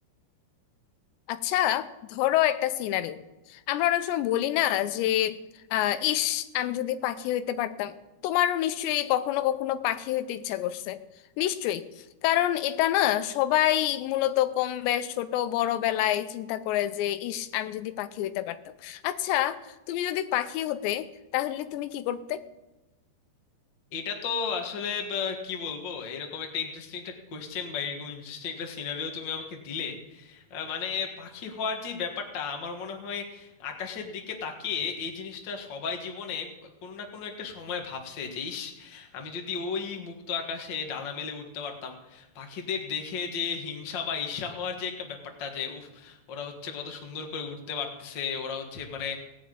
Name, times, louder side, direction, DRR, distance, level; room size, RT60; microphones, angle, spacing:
voice 1, 1.3-3.2 3.5-5.4 5.7-7.9 8.2-11.0 11.4-11.8 12.2-18.6 18.8-19.6 19.9-21.1 21.3-22.4, left 13 dB, 90° left, 12 dB, 3.0 m, -27 dB
voice 2, 23.9-36.5 36.8-49.2, left 6 dB, 60° left, 3 dB, 1.2 m, -34 dB
18.5 x 6.1 x 8.6 m, 1.0 s
omnidirectional pair, 4.9 m